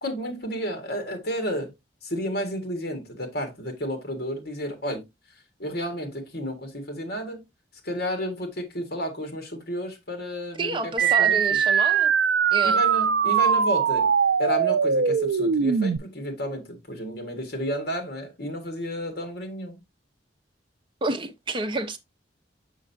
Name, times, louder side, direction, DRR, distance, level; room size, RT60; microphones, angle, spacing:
voice 1, 0.0-1.7 2.0-5.0 5.6-7.4 7.8-11.4 12.6-14.1 14.4-19.8, equal, 60° left, 1.7 m, -31 dB
voice 2, 10.6-12.1 12.5-12.8 21.0-22.0, right 2 dB, 30° right, 0.7 m, -29 dB
sound 1, 11.0-16.0, right 7 dB, 70° right, 0.4 m, -21 dB
6.4 x 5.6 x 2.6 m
head